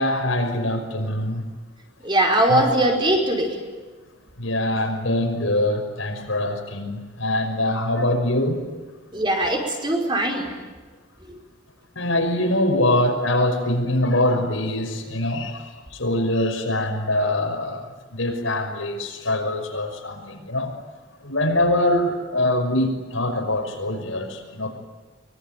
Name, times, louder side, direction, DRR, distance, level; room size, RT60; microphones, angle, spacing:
voice 1, 0.0-1.4 2.5-2.7 4.4-8.6 12.0-20.7 21.2-24.8, left 1 dB, 85° left, 2 dB, 5.9 m, -23 dB
voice 2, 2.0-3.6 9.1-10.5 11.3-11.4, right 1 dB, 25° right, 2 dB, 5.1 m, -21 dB
24.5 x 23.5 x 9.3 m, 1.4 s
head